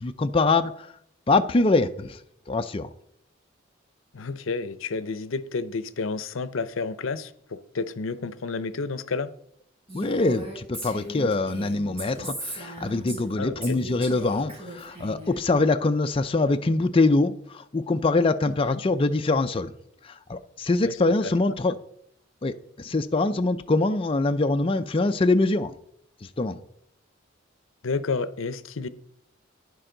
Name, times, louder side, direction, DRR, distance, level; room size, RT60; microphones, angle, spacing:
voice 1, 0.0-0.9 1.3-2.2 2.5-2.9 9.9-19.7 20.0-21.8 22.4-25.7 26.4-26.6, left 3 dB, 25° left, 0.5 m, -24 dB
voice 2, 4.1-9.3 13.4-13.8 18.5-18.8 20.8-20.9 21.2-21.5 27.8-28.9, left 4 dB, 80° left, 0.6 m, -31 dB
Female speech woman speaking, 9.9-13.3 13.6-15.4, right 1 dB, 30° right, 4.4 m, -38 dB
11.5 x 9.9 x 3.8 m
head